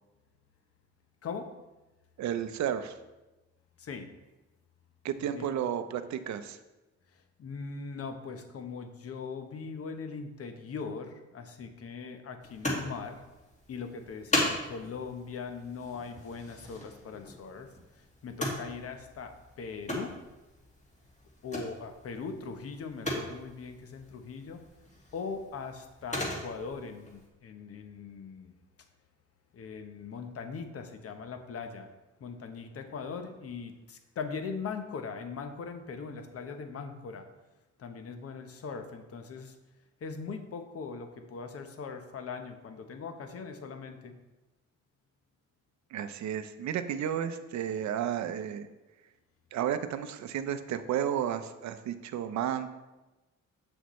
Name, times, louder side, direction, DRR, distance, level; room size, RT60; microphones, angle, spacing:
voice 1, 2.2-3.0 5.0-6.6 45.9-48.7 49.5-52.7, right 9 dB, 65° right, 10 dB, 0.6 m, -32 dB
voice 2, 3.8-4.1 5.2-5.5 7.4-13.2 13.7-17.7 18.2-20.1 21.4-24.6 25.1-28.5 29.5-31.9 32.2-37.3 37.8-39.5 40.0-44.1, left 5 dB, 50° left, 7 dB, 0.9 m, -40 dB
sound 1, 12.4-27.3, left 1 dB, 25° left, 2.1 m, -38 dB
8.0 x 6.2 x 3.1 m, 1.1 s
cardioid pair, 90°, 30 cm